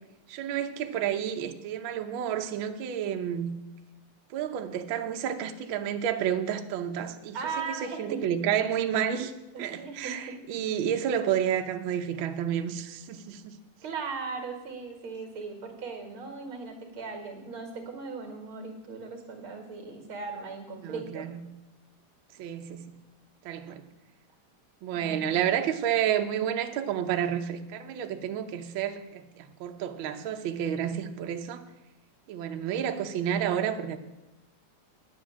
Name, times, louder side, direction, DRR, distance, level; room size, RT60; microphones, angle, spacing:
voice 1, 0.3-3.6 4.3-7.4 7.7-9.3 9.6-13.6 20.8-21.5 22.4-22.9 23.4-23.8 24.8-31.6 32.3-34.0, right 9 dB, 80° right, 1.1 m, -30 dB
voice 2, 7.3-8.2 9.5-10.4 13.8-21.3 24.9-25.2, right 4 dB, 50° right, 2.3 m, -38 dB
10.5 x 7.8 x 8.6 m
omnidirectional pair, 3.5 m